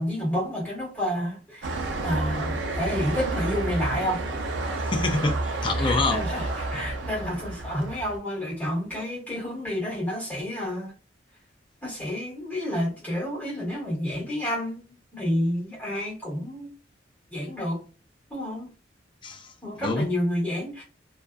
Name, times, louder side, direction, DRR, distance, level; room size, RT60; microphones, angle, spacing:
voice 1, 0.0-4.2 4.7-4.8 5.6-10.9 11.8-16.7 17.3-17.8 18.3-18.7 19.6-20.8, equal, 10° left, 1.4 m, -30 dB
sound 1, 1.6-8.2, right 2 dB, 85° right, 0.4 m, -30 dB
voice 2, 4.8-6.2 19.2-20.1, left 3 dB, 25° left, 0.3 m, -27 dB
2.5 x 2.3 x 2.3 m
head